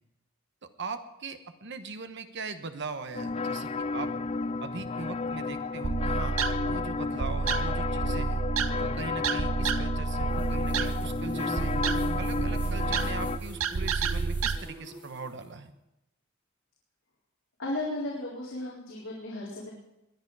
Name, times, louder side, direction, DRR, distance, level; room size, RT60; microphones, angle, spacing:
voice 1, 0.6-4.1 4.6-8.4 8.8-11.7 12.2-15.7, right 4 dB, 60° right, 9 dB, 1.2 m, -40 dB
sound 1, 3.1-13.4, left 4 dB, 30° left, 0.4 m, -32 dB
sound 2, 5.8-14.6, right 5 dB, 75° right, 0.7 m, -30 dB
sound 3, 10.3-15.4, right 1 dB, 10° right, 5.6 m, -42 dB
voice 2, 17.6-19.7, left 1 dB, 70° left, -6 dB, 4.0 m, -35 dB
21.0 x 10.5 x 4.8 m, 0.90 s
head